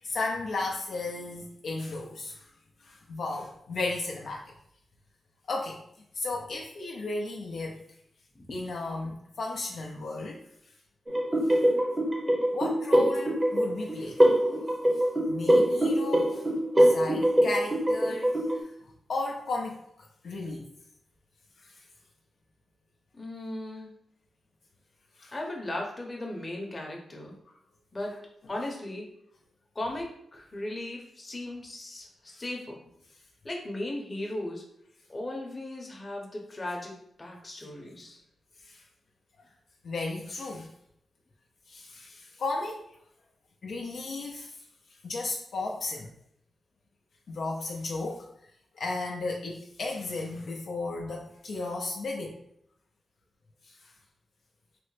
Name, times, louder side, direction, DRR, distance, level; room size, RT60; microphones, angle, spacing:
voice 1, 0.0-2.5 2.8-4.5 5.5-5.8 6.1-7.8 8.5-10.4 11.5-11.6 12.5-14.3 15.3-16.4 16.8-19.8 20.2-20.7 21.6-21.7 25.2-25.3 38.6-38.8 39.8-40.7 41.7-42.8 43.6-44.5 45.0-46.1 47.3-48.3 48.8-52.4, left 3 dB, 70° left, 0 dB, 0.4 m, -34 dB
sound 1, 11.1-18.6, equal, 25° right, 0.7 m, -24 dB
voice 2, 23.2-23.9 25.3-27.3 27.9-28.1 28.5-29.1 29.8-32.8 33.4-34.6 35.1-38.2, left 1 dB, 30° left, 0 dB, 0.7 m, -37 dB
3.3 x 2.0 x 3.2 m, 0.73 s
cardioid pair, 85°, 0 cm